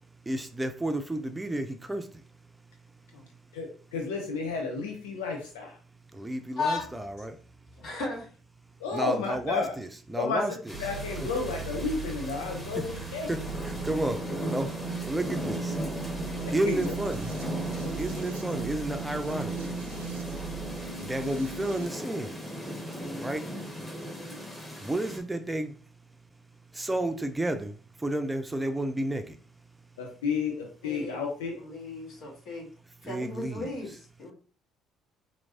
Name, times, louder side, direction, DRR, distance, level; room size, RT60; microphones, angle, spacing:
voice 1, 0.3-2.0 6.1-7.3 8.9-10.8 13.0-13.4 13.6-14.2 14.5-15.7 16.5-17.3 18.0-19.5 21.0-22.3 23.2-23.4 23.8-23.9 24.8-25.7 26.8-27.7 28.0-29.3 33.0-33.7, right 1 dB, 15° right, 7 dB, 0.6 m, -31 dB
voice 2, 3.5-5.8 8.8-9.7 10.2-10.5 10.8-13.3 16.5-16.9 17.8-17.9 30.0-31.5, left 4 dB, 80° left, 2 dB, 0.6 m, -32 dB
voice 3, 6.6-6.9 7.8-8.3 14.1-14.2 30.8-31.2 31.6-32.7 33.0-33.9 34.2-34.3, left 3 dB, 65° left, -2 dB, 1.7 m, -35 dB
sound 1, 10.7-25.2, equal, 15° left, 1.5 m, -38 dB
sound 2, 10.7-21.9, right 5 dB, 80° right, 0.5 m, -38 dB
4.5 x 2.8 x 2.7 m, 0.40 s
hypercardioid pair, 50°, 0 cm